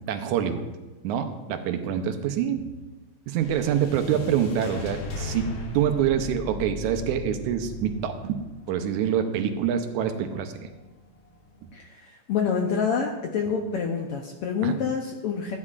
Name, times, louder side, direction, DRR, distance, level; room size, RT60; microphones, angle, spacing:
voice 1, 0.1-0.6 1.0-2.7 3.3-10.7 14.6-14.7, right 8 dB, 90° right, 7 dB, 2.1 m, -26 dB
sound 1, 3.4-11.8, left 2 dB, 55° left, 1.6 m, -39 dB
voice 2, 11.7-15.6, left 6 dB, 75° left, 2 dB, 1.3 m, -27 dB
14.5 x 9.6 x 2.5 m, 1.1 s
omnidirectional pair, 3.4 m